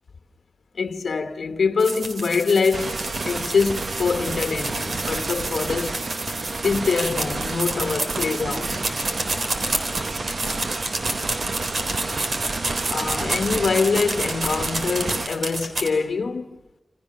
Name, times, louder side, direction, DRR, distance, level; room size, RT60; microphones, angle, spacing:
voice 1, 0.7-6.0 6.6-8.8 12.9-16.6, left 5 dB, 90° left, 1.1 m, -24 dB
sound 1, 1.8-15.9, right 2 dB, 75° right, 3.5 m, -29 dB
sound 2, 2.7-15.3, right 3 dB, 55° right, 1.1 m, -31 dB
29.0 x 28.0 x 6.4 m
wide cardioid pair, 115°, 0 cm